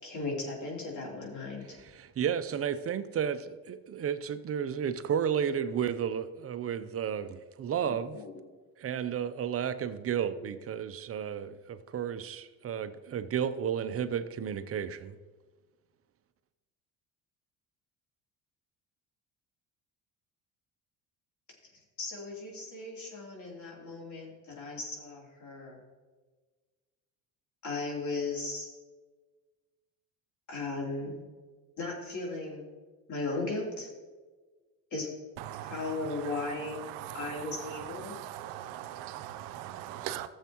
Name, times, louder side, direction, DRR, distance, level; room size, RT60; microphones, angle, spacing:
voice 1, 0.0-1.8 7.8-8.3 22.0-25.8 27.6-28.7 30.5-31.2 31.8-32.7 33.1-33.9 34.9-35.1 35.6-36.8 37.1-38.1, left 3 dB, 50° left, 3.3 m, -36 dB
voice 2, 1.7-8.2 8.8-15.2, right 8 dB, 35° right, 0.6 m, -32 dB
voice 3, 38.0-40.3, right 12 dB, 90° right, 0.7 m, -40 dB
14.5 x 7.3 x 3.0 m
supercardioid pair, 90°, 39 cm